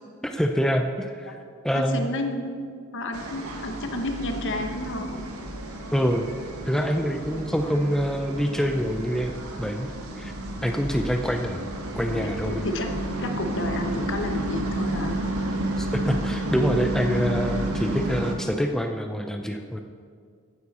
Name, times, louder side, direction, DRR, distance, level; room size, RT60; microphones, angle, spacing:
voice 1, 0.2-1.3 1.6-2.1 5.9-6.3 6.7-9.3 9.6-9.9 10.2-10.3 10.6-11.6 11.9-12.6 15.8-19.8, equal, ahead, 4 dB, 0.5 m, -25 dB
voice 2, 1.7-2.5 2.9-5.2 12.1-12.9 13.2-15.2, left 1 dB, 60° left, 5 dB, 1.2 m, -31 dB
sound 1, 3.1-18.4, right 1 dB, 80° right, 1.6 m, -31 dB
15.5 x 9.4 x 4.3 m, 2.1 s
head